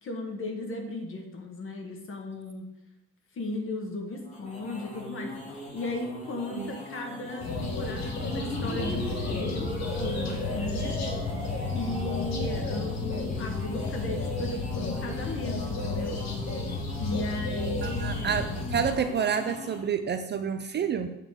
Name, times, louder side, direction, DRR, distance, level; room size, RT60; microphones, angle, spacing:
voice 1, 0.0-2.6 3.3-11.0 11.7-16.2 17.0-18.4, left 2 dB, 45° left, 3 dB, 1.5 m, -36 dB
sound 1, 4.1-20.0, left 1 dB, 25° left, 1.7 m, -42 dB
sound 2, 7.4-19.0, left 3 dB, 60° left, 1.5 m, -32 dB
sound 3, 8.1-12.9, right 1 dB, 10° right, 1.3 m, -38 dB
voice 2, 17.8-21.1, right 7 dB, 35° right, 8 dB, 0.4 m, -29 dB
8.1 x 3.8 x 6.4 m, 0.90 s
cardioid pair, 160°, 31 cm